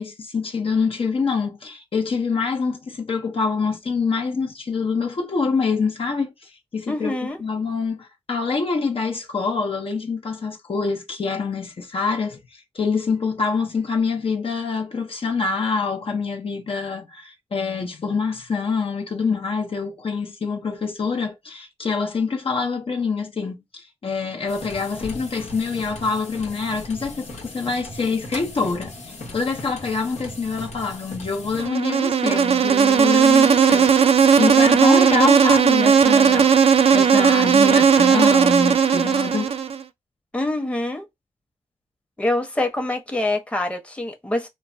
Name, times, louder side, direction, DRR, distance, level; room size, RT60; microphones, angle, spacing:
voice 1, 0.0-7.1 7.4-12.4 12.7-36.6 36.9-39.5, left 4 dB, 55° left, 0.7 m, -25 dB
voice 2, 6.9-7.4 40.3-41.1 42.2-44.5, left 2 dB, 10° left, 0.8 m, -25 dB
sound 1, 24.5-31.7, left 2 dB, 80° left, 1.0 m, -37 dB
Insect, 31.6-39.8, right 6 dB, 60° right, 0.4 m, -16 dB
3.0 x 2.1 x 2.5 m
cardioid pair, 60°, 12 cm